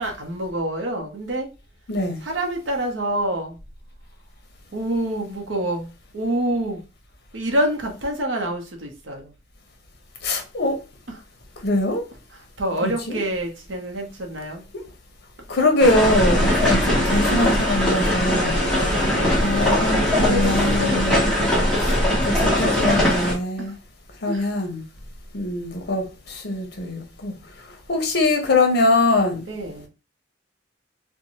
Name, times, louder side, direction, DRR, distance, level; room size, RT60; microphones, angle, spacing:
voice 1, 0.0-1.5 2.2-3.6 4.7-6.8 7.3-9.3 12.3-14.6 15.9-16.0 16.7-17.6 18.3-19.2 20.2-21.5 23.6-23.8 24.3-24.5 29.5-29.9, right 1 dB, 85° right, 0.8 m, -27 dB
voice 2, 1.9-2.2 10.2-10.8 11.6-12.0 12.8-13.2 15.5-18.9 19.3-21.2 21.8-22.0 22.2-23.7 24.2-24.8 25.3-29.4, left 2 dB, 60° left, 0.8 m, -23 dB
sound 1, 15.8-23.3, left 1 dB, 5° left, 0.9 m, -20 dB
2.6 x 2.2 x 2.9 m
head